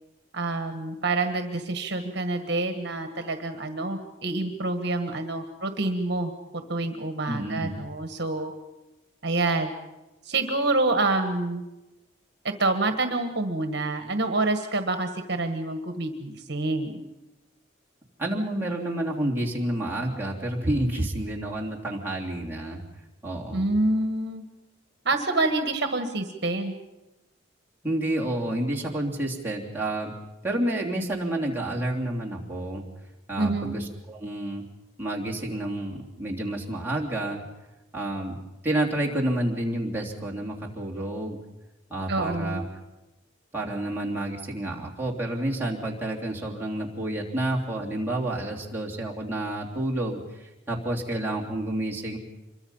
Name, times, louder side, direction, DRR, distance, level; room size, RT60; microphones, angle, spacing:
voice 1, 0.3-6.3 6.7-8.5 9.2-9.7 10.2-11.6 12.4-17.0 23.5-24.4 25.0-26.7 33.4-33.8 42.1-42.6, right 2 dB, 55° right, 6 dB, 1.6 m, -27 dB
voice 2, 7.3-7.7 18.2-22.8 23.2-23.7 27.8-30.1 30.4-32.8 33.3-34.6 35.0-37.4 37.9-38.4 38.6-41.4 41.9-42.6 43.5-52.2, right 1 dB, 10° right, -3 dB, 3.1 m, -29 dB
26.0 x 23.5 x 5.6 m, 1.0 s
head